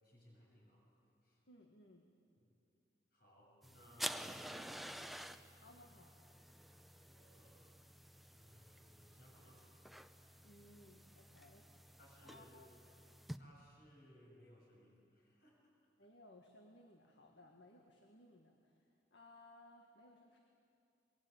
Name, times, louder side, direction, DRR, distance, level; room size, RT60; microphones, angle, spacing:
voice 1, 0.0-0.9 1.2-1.4 2.4-2.5 3.1-5.0 6.5-7.6 8.3-9.7 12.0-12.6 13.3-15.6, equal, 55° left, -1 dB, 7.8 m, -64 dB
voice 2, 1.5-2.1 5.5-6.1 10.4-11.9 12.2-12.7 16.0-20.4, left 1 dB, 85° left, 2 dB, 1.9 m, -62 dB
sound 1, 3.6-13.4, equal, ahead, 0.6 m, -50 dB
23.5 x 21.5 x 8.8 m, 2.5 s
head